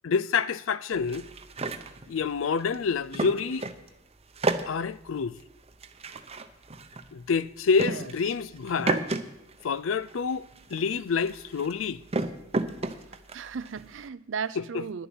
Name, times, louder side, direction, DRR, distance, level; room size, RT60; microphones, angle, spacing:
voice 1, 0.0-1.3 2.1-3.7 4.7-5.4 7.1-9.1 9.6-12.0 14.6-14.9, left 5 dB, 85° left, 0.4 m, -28 dB
sound 1, 0.9-3.9 4.2-9.2 9.5-14.1, right 2 dB, 30° right, 0.7 m, -33 dB
voice 2, 13.3-15.1, right 6 dB, 70° right, 0.5 m, -35 dB
10.5 x 7.0 x 8.8 m
head